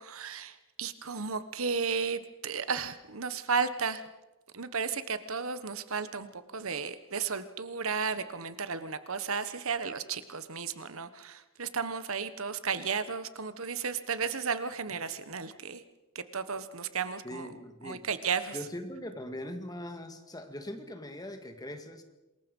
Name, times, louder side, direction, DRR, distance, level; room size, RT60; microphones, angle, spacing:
voice 1, 0.0-4.0 4.5-15.8 16.1-17.5 17.8-18.6, right 5 dB, 70° right, 12 dB, 1.3 m, -34 dB
voice 2, 17.2-18.1 18.5-22.0, left 1 dB, 20° left, 6 dB, 2.1 m, -41 dB
27.0 x 21.5 x 5.5 m, 1.0 s
head